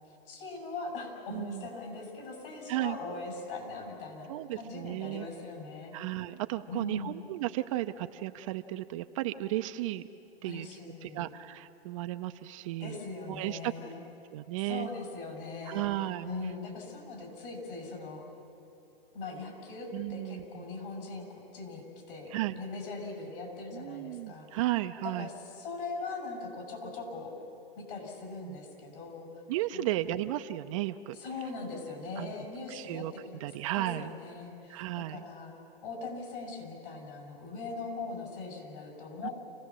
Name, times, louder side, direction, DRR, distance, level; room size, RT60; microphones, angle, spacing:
voice 1, 0.3-5.9 6.7-7.2 10.4-11.3 12.8-14.0 14.6-15.9 16.2-18.2 19.1-24.6 25.0-27.3 27.8-29.3 29.7-29.8 31.1-33.4 33.7-35.5 35.8-39.3, left 3 dB, 60° left, 1 dB, 7.5 m, -41 dB
voice 2, 1.3-1.7 2.7-3.0 4.3-5.3 5.9-10.0 10.4-13.0 13.3-14.0 14.3-14.9 15.7-16.3 19.9-20.6 22.3-22.6 23.7-25.3 28.4-28.6 29.5-31.2 32.2-32.3 32.7-34.1 34.7-35.2 39.2-39.3, right 15 dB, 35° right, 9 dB, 0.5 m, -34 dB
29.0 x 17.5 x 7.5 m, 2.9 s
hypercardioid pair, 135°, 30 cm